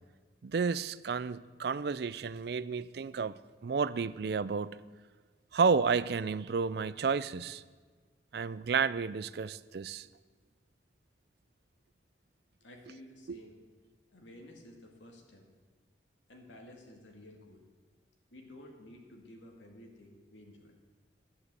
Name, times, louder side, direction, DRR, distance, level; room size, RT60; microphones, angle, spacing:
voice 1, 0.4-3.4 3.6-4.8 5.5-7.6 8.3-10.1 13.3-13.4, right 5 dB, 60° right, 0.4 m, -31 dB
voice 2, 12.6-13.5 14.1-15.5 16.3-17.7 18.3-20.8, left 1 dB, 85° left, 2.2 m, -53 dB
11.0 x 7.9 x 8.1 m
head